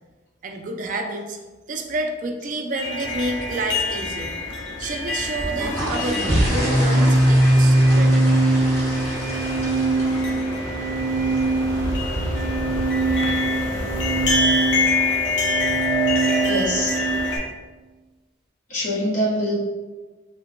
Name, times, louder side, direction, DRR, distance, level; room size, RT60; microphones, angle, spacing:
voice 1, 0.4-1.4 1.7-4.3 4.8-8.2, right 2 dB, 45° right, 3 dB, 0.4 m, -29 dB
sound 1, 2.7-17.4, left 2 dB, 70° left, 0.7 m, -26 dB
sound 2, 5.4-14.3, equal, 15° left, 1.1 m, -30 dB
Organ, 6.4-17.2, right 2 dB, ahead, 0.6 m, -21 dB
voice 2, 16.4-17.0 18.7-19.6, equal, 40° left, -5 dB, 1.0 m, -24 dB
3.8 x 2.2 x 3.5 m, 1.3 s
head